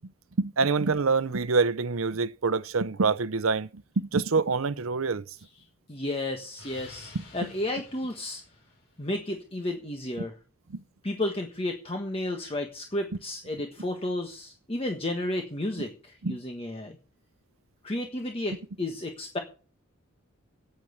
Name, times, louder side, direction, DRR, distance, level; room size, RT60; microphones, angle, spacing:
voice 1, 0.4-3.7 4.0-5.2 10.7-10.8 16.2-16.4, right 4 dB, 75° right, 0.7 m, -26 dB
Explosion, 5.4-9.2, left 3 dB, 55° left, 7.1 m, -52 dB
voice 2, 5.9-8.4 9.0-10.4 11.0-17.0 17.8-19.4, left 1 dB, 25° left, 1.4 m, -32 dB
9.2 x 9.0 x 8.0 m
head